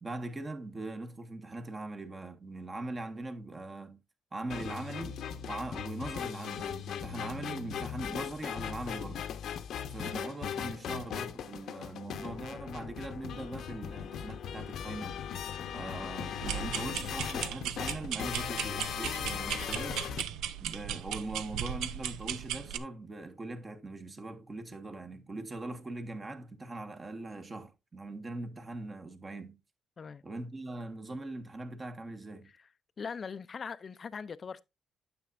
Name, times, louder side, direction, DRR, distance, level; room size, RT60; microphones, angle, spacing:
voice 1, 0.0-4.0 4.3-5.2 5.4-9.3 9.9-15.2 15.7-20.1 20.6-29.6 30.2-32.5, right 2 dB, 30° right, 1.3 m, -41 dB
sound 1, 4.5-20.2, left 8 dB, 70° left, 0.8 m, -38 dB
sound 2, 16.4-22.8, right 10 dB, 90° right, 0.5 m, -37 dB
voice 2, 33.0-34.6, left 5 dB, 40° left, 0.5 m, -40 dB
9.3 x 6.9 x 2.5 m
cardioid pair, 90°, 0 cm